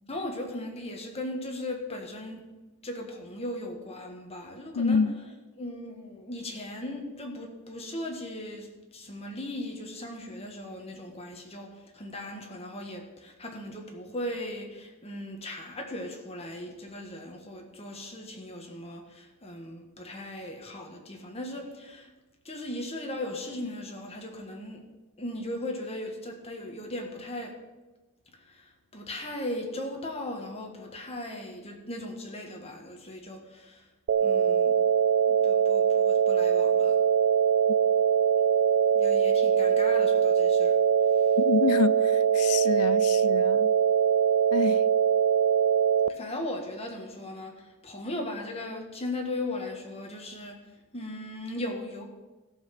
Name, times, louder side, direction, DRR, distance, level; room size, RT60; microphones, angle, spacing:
voice 1, 0.1-2.5 2.8-5.0 5.6-22.1 22.4-24.8 25.2-27.5 28.3-33.9 34.2-34.8 35.3-37.0 38.9-40.8 41.1-41.4 46.1-52.0, left 1 dB, 30° left, 1.7 m, -38 dB
voice 2, 4.7-5.1 41.4-43.7 44.5-44.9, left 5 dB, 80° left, 0.4 m, -27 dB
sound 1, 34.1-46.1, right 7 dB, 60° right, 0.4 m, -22 dB
14.0 x 5.8 x 6.0 m
head